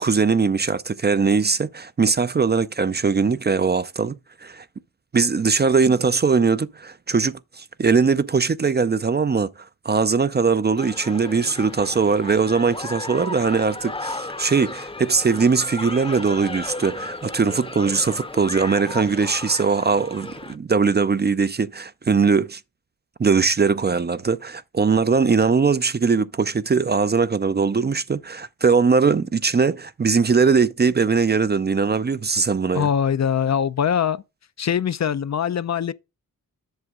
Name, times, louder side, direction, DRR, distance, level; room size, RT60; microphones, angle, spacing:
voice 1, 0.0-4.6 5.1-9.5 9.8-22.6 23.2-32.9, right 5 dB, 30° right, 0.5 m, -20 dB
sound 1, 10.8-20.6, left 2 dB, 15° left, 0.7 m, -34 dB
voice 2, 32.7-34.2 34.6-35.9, left 8 dB, 50° left, 0.5 m, -22 dB
8.0 x 5.9 x 3.6 m
cardioid pair, 55°, 35 cm